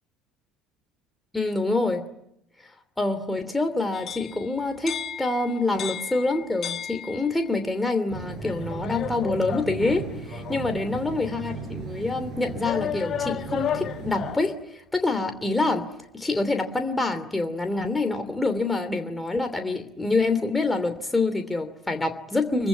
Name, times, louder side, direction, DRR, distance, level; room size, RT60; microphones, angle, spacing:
voice 1, 1.3-2.1 3.0-15.9 16.1-22.7, left 3 dB, 10° left, 6 dB, 2.9 m, -26 dB
sound 1, 3.9-7.6 8.4-10.7 11.4-11.5 12.6-14.6, left 9 dB, 45° left, 1.3 m, -34 dB
sound 2, 8.1-14.4, right 5 dB, 50° right, 7.6 m, -37 dB
26.5 x 23.5 x 9.5 m, 0.78 s
figure-of-eight pair, 65°, 0 cm